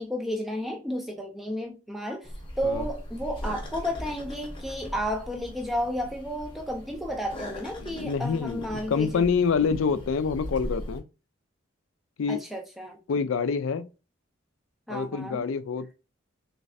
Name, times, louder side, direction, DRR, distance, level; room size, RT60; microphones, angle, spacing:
voice 1, 0.0-2.3 2.6-9.2 12.3-13.0 14.9-15.4, equal, ahead, 0.4 m, -32 dB
sound 1, 2.2-11.0, equal, 25° left, 0.8 m, -40 dB
voice 2, 7.8-11.0 12.2-12.4 13.1-13.9 14.9-15.9, left 5 dB, 70° left, 0.4 m, -27 dB
3.2 x 3.1 x 2.6 m
head